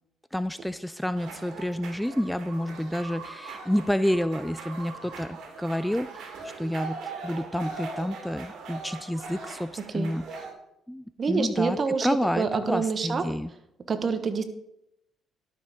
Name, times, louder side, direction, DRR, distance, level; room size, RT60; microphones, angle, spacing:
voice 1, 0.3-6.3 6.6-10.3 10.9-11.8 12.0-13.5, equal, 5° left, 13 dB, 0.3 m, -29 dB
sound 1, 1.1-10.5, right 4 dB, 70° right, 2.5 m, -40 dB
voice 2, 11.2-13.2 13.9-14.4, right 5 dB, 40° right, 9 dB, 1.3 m, -27 dB
12.0 x 6.3 x 5.1 m, 0.80 s
cardioid pair, 85°, 0 cm